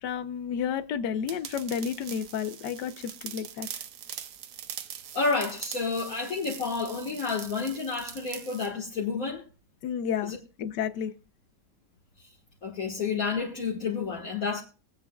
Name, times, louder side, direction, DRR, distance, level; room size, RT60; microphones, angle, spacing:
voice 1, 0.0-3.7 9.8-11.1, left 8 dB, 80° left, 1.4 m, -31 dB
sound 1, 1.3-8.7, right 9 dB, 75° right, 1.4 m, -42 dB
voice 2, 5.1-9.4 10.2-10.4 12.6-14.6, left 4 dB, 55° left, 2.1 m, -30 dB
23.5 x 8.4 x 2.3 m
omnidirectional pair, 1.8 m